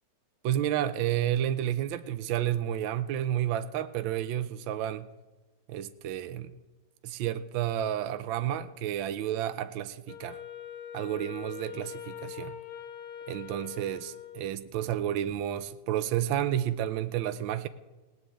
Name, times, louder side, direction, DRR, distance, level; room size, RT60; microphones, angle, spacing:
voice 1, 0.4-5.1 5.7-6.5 7.0-10.4 10.9-12.6 13.3-17.7, right 11 dB, 75° right, 1.4 m, -31 dB
Wind instrument woodwind instrument, 10.1-14.7, left 10 dB, 55° left, 1.3 m, -43 dB
18.5 x 6.4 x 8.5 m
omnidirectional pair, 2.3 m